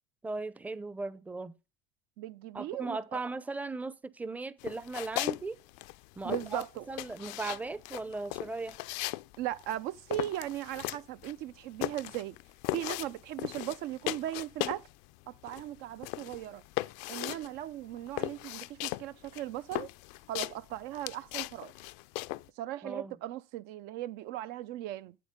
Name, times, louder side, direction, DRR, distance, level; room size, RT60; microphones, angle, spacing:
voice 1, 0.2-1.5 2.5-5.6 6.2-8.8 22.8-23.1, right 3 dB, 10° right, 0.6 m, -38 dB
voice 2, 2.2-3.2 6.2-6.9 9.4-12.4 12.7-14.9 15.3-16.6 17.1-19.9 20.3-21.7 22.6-25.2, right 14 dB, 70° right, 0.5 m, -38 dB
sound 1, 4.6-5.4 5.7-14.9 15.2-22.5, left 21 dB, 75° left, 0.4 m, -37 dB
8.4 x 7.9 x 3.6 m
supercardioid pair, 105°, 17 cm